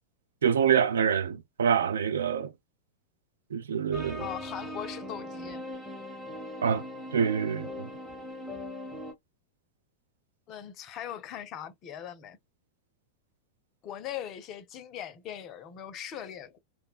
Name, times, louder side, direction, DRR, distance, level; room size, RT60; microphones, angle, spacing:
voice 1, 0.4-2.5 3.5-4.2 6.6-6.8 7.1-7.9, right 7 dB, 65° right, 0.3 m, -26 dB
sound 1, 3.9-9.1, left 1 dB, ahead, 0.7 m, -40 dB
voice 2, 4.2-5.6 10.5-12.4 13.8-16.6, left 10 dB, 35° left, 0.5 m, -40 dB
2.5 x 2.1 x 2.3 m
figure-of-eight pair, 90°, 0 cm